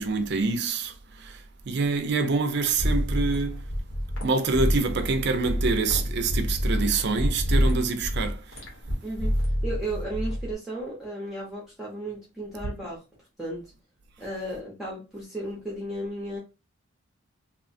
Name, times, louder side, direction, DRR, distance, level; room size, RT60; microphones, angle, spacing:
voice 1, 0.0-3.7 4.2-8.6, right 4 dB, 50° right, 0.4 m, -26 dB
sound 1, 2.7-10.5, equal, 70° left, 1.0 m, -27 dB
voice 2, 9.0-13.0 13.4-13.7 14.2-16.4, right 1 dB, ahead, 0.6 m, -34 dB
3.0 x 2.1 x 2.5 m
head